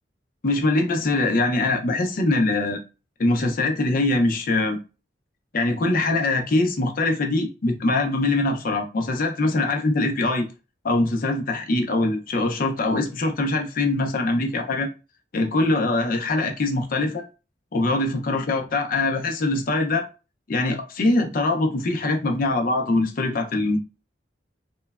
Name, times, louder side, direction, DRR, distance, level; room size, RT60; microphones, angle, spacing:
voice 1, 0.4-2.8 3.2-4.8 5.5-10.5 10.8-14.9 15.3-17.2 17.7-20.1 20.5-23.8, left 2 dB, 50° left, 0.5 m, -23 dB
3.0 x 2.1 x 2.3 m
head